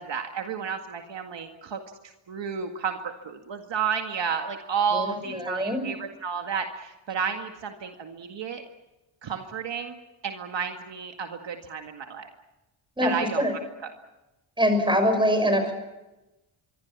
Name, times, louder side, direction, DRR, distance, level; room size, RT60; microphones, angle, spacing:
voice 1, 0.0-1.8 2.3-8.6 9.2-10.0 10.2-12.3 13.0-13.4 13.8-13.9, right 6 dB, 60° right, 4 dB, 2.1 m, -31 dB
voice 2, 4.9-5.9 13.0-13.5 14.6-15.7, equal, 10° right, 7 dB, 6.7 m, -24 dB
25.0 x 23.5 x 7.3 m, 1.0 s
cardioid pair, 105°, 49 cm